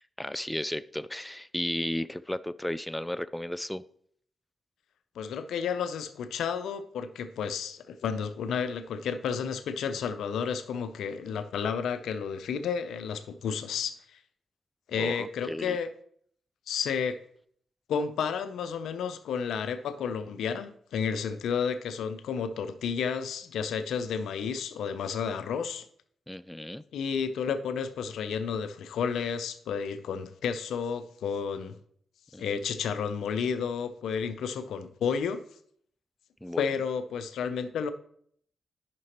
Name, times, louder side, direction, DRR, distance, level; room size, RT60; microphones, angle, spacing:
voice 1, 0.2-3.8 15.0-15.8 26.3-26.8 32.3-32.6 36.4-36.6, left 1 dB, 10° left, 0.3 m, -34 dB
voice 2, 5.1-14.2 14.9-15.9 16.7-17.2 17.9-25.9 26.9-31.8 32.4-35.4 36.6-37.9, left 6 dB, 85° left, 0.5 m, -31 dB
9.4 x 5.9 x 2.9 m
supercardioid pair, 50°, 0 cm